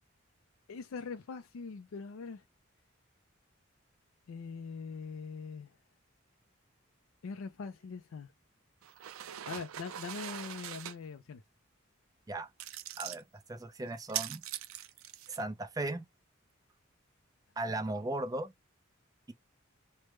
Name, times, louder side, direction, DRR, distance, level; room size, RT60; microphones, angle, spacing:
voice 1, 0.7-2.4 4.3-5.7 7.2-8.3 9.5-11.4, left 5 dB, 85° left, 0.4 m, -42 dB
sound 1, 8.8-11.0 12.6-13.2 14.0-15.4, right 12 dB, 85° right, 0.4 m, -41 dB
voice 2, 13.5-14.4 15.3-16.0 17.6-18.5, right 2 dB, 20° right, 0.4 m, -36 dB
3.2 x 2.1 x 3.0 m
head